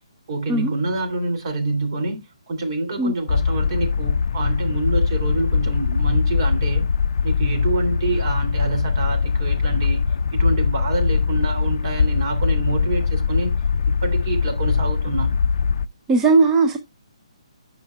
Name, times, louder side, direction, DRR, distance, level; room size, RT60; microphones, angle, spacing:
voice 1, 0.3-2.2 2.5-6.8 7.2-10.0 10.3-13.5 13.9-15.3, right 2 dB, 45° right, 2.8 m, -26 dB
sound 1, 3.3-15.9, left 5 dB, 65° left, 0.3 m, -21 dB
voice 2, 16.1-16.8, right 3 dB, 15° right, 0.6 m, -17 dB
15.0 x 5.3 x 2.3 m
hypercardioid pair, 150°, 3 cm